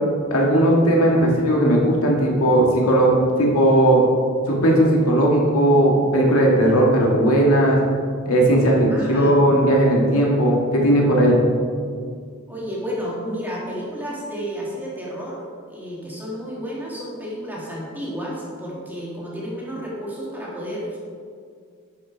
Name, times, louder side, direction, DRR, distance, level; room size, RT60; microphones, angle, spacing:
voice 1, 0.3-4.0 4.5-7.8 8.3-11.4, right 1 dB, 85° left, -2 dB, 2.0 m, -17 dB
voice 2, 8.9-9.4 12.5-21.0, equal, 10° right, -5 dB, 2.3 m, -31 dB
11.5 x 6.2 x 4.7 m, 2.1 s
head